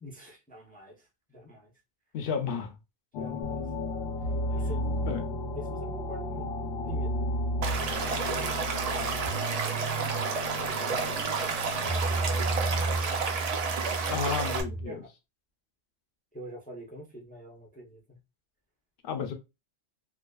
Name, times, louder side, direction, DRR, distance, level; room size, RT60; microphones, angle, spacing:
voice 1, 0.0-0.9 1.3-1.7 3.2-3.6 4.5-5.1 5.5-6.5 6.8-7.1 8.0-8.6 10.6-13.2 14.1-14.2 14.9-15.0 16.3-18.2, equal, 10° left, 0.4 m, -45 dB
voice 2, 2.1-2.8 4.6-4.7 5.0-5.3 14.1-15.0 19.0-19.3, left 6 dB, 60° left, 0.6 m, -32 dB
sound 1, 3.1-13.0, left 7 dB, 85° left, 0.9 m, -38 dB
sound 2, 3.4-14.8, right 2 dB, 45° right, 0.7 m, -34 dB
Stream / Liquid, 7.6-14.6, right 5 dB, 85° right, 0.3 m, -31 dB
2.4 x 2.4 x 2.3 m
omnidirectional pair, 1.2 m